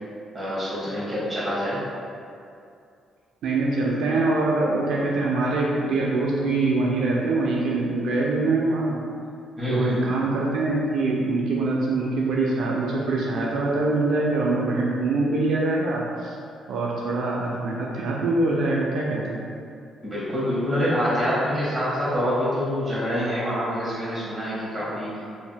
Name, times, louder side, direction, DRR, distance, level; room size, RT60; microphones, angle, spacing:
voice 1, 0.3-1.8 9.6-10.0 20.0-25.1, equal, 15° right, -10 dB, 1.3 m, -26 dB
voice 2, 3.4-9.0 9.7-16.3 16.7-19.4, right 2 dB, 75° right, -3 dB, 0.3 m, -24 dB
3.3 x 2.6 x 2.2 m, 2.5 s
cardioid pair, 90°, 0 cm